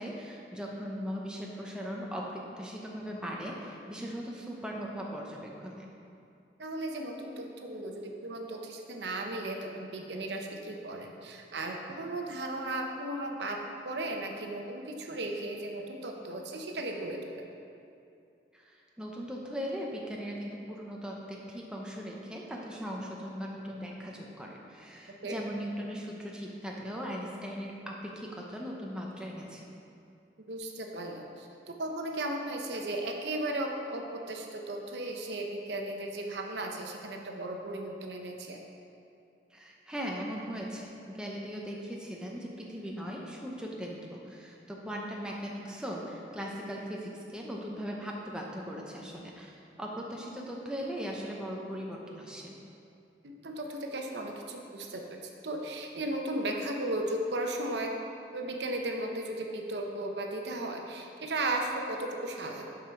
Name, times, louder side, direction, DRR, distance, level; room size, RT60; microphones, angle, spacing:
voice 1, 0.0-5.9 18.5-29.7 39.5-52.6, equal, 5° right, -2 dB, 0.7 m, -39 dB
voice 2, 6.6-13.6 13.8-17.5 25.2-25.4 30.5-38.6 53.2-57.9 58.3-62.8, right 1 dB, 75° right, 2 dB, 0.8 m, -36 dB
7.2 x 4.9 x 5.8 m, 2.6 s
head